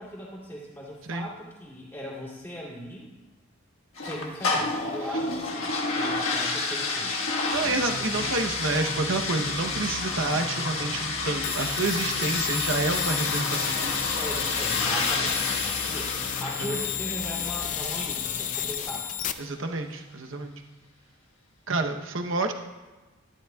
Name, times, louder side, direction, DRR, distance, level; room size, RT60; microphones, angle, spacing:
voice 1, 0.0-3.1 4.0-7.1 14.2-19.1, equal, 10° left, -5 dB, 2.8 m, -38 dB
sound 1, 4.0-19.2, left 3 dB, 75° left, 1.5 m, -30 dB
sound 2, 7.5-18.3, equal, 55° left, 1.0 m, -41 dB
voice 2, 7.5-14.0 16.6-16.8 19.4-20.5 21.7-22.5, right 3 dB, 60° right, 4 dB, 0.9 m, -29 dB
sound 3, 11.4-19.3, left 10 dB, 35° left, 0.4 m, -32 dB
12.5 x 12.0 x 2.3 m, 1.2 s
head